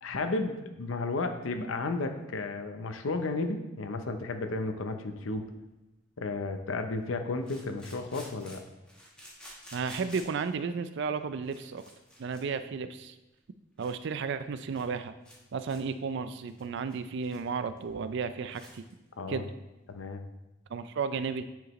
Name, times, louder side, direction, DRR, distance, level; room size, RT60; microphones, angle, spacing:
voice 1, 0.0-5.5 6.2-8.6 19.2-19.4 19.9-20.2, left 3 dB, 80° left, 6 dB, 0.7 m, -33 dB
sound 1, 5.6-5.7 7.4-10.5 11.2-11.3 11.4-12.4 12.7-12.9 13.4-13.5 13.8-13.9 14.2-14.3 14.6-14.9 15.2-15.4 15.6-15.8 16.2-17.5 17.8-17.9 18.2-18.3 18.5-18.9, equal, 5° left, 1.2 m, -51 dB
voice 2, 9.7-11.8 12.2-13.1 13.8-15.1 15.5-18.8 19.3-19.5 20.7-21.4, right 5 dB, 60° right, 11 dB, 0.4 m, -33 dB
9.0 x 4.9 x 3.1 m, 1.0 s
head